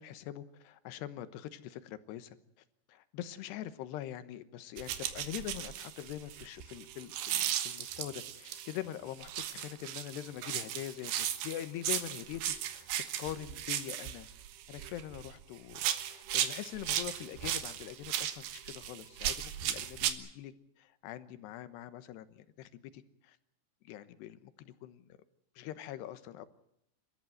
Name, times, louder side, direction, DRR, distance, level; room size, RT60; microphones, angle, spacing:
voice 1, 0.0-2.4 2.9-12.9 13.2-14.3 14.7-23.4 23.8-25.1 25.6-26.5, left 12 dB, 80° left, 13 dB, 3.2 m, -43 dB
sound 1, 4.8-8.8 9.2-15.3 15.7-20.1, right 11 dB, 75° right, 3.5 m, -36 dB
28.0 x 14.0 x 9.3 m, 0.74 s
omnidirectional pair, 5.0 m